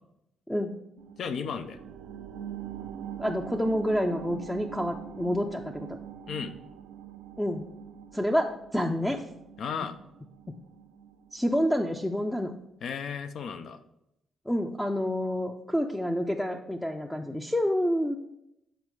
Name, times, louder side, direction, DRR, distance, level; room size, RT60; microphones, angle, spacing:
sound 1, 1.0-12.1 12.5-12.6, right 9 dB, 90° right, 0.5 m, -43 dB
voice 1, 1.2-1.8 6.3-6.5 9.6-10.0 12.8-13.8, left 6 dB, 65° left, 10 dB, 0.6 m, -34 dB
voice 2, 3.2-6.0 7.4-7.6 8.1-9.2 11.3-12.5 14.5-18.2, equal, 5° left, 2 dB, 0.5 m, -28 dB
8.1 x 4.2 x 4.8 m, 0.84 s
cardioid pair, 90°, 0 cm